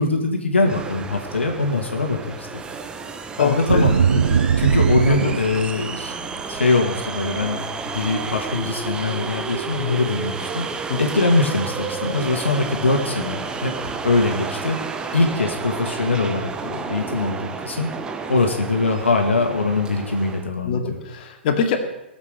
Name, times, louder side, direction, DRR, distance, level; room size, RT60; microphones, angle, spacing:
voice 1, 0.0-2.5 3.4-4.2 4.6-6.2 6.5-7.7 7.9-10.7 11.0-13.7 14.0-14.8 15.1-17.9 18.3-21.0, left 3 dB, 80° left, 2 dB, 1.9 m, -22 dB
sound 1, 0.6-20.5, right 5 dB, 15° right, 0.9 m, -31 dB
voice 2, 3.4-3.8 4.3-4.4 5.1-5.2 10.9-11.0 20.7-21.8, left 6 dB, 45° left, 4 dB, 2.2 m, -23 dB
sound 2, 3.7-5.7 6.1-6.6, right 6 dB, 70° right, 0.6 m, -19 dB
19.5 x 7.4 x 6.6 m, 0.94 s
figure-of-eight pair, 115°, 6 cm